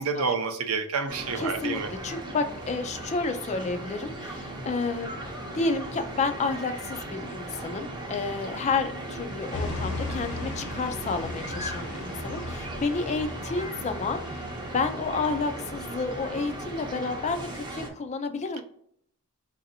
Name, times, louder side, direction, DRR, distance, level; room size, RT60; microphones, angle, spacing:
voice 1, 0.0-1.9, right 5 dB, 75° right, 7 dB, 0.6 m, -28 dB
sound 1, 1.1-17.9, right 1 dB, 20° right, 0.7 m, -37 dB
voice 2, 1.4-5.2 5.5-18.6, left 4 dB, 30° left, 8 dB, 0.4 m, -30 dB
sound 2, 9.5-15.6, left 3 dB, 85° left, 1.1 m, -38 dB
4.9 x 2.7 x 2.6 m, 0.67 s
head